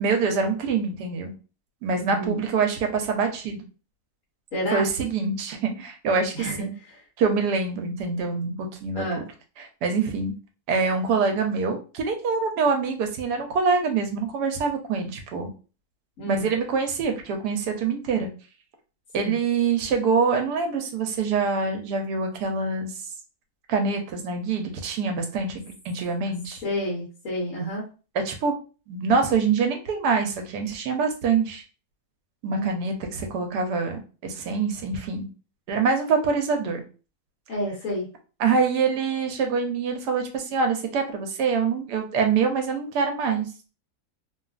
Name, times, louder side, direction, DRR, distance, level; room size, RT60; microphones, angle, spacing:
voice 1, 0.0-1.3 1.8-3.6 4.7-6.7 7.2-9.1 9.6-10.3 10.7-15.5 16.3-18.3 19.1-22.9 23.7-26.6 28.1-28.5 28.9-31.6 32.4-35.3 35.7-36.8 38.4-43.5, right 5 dB, 80° right, 4 dB, 1.2 m, -25 dB
voice 2, 2.0-2.4 4.5-4.9 6.3-7.0 8.9-9.2 16.2-16.5 19.2-19.4 26.6-27.8 32.5-32.8 37.5-38.1, equal, 60° left, -5 dB, 1.3 m, -30 dB
3.0 x 2.4 x 2.3 m, 0.35 s
omnidirectional pair, 1.7 m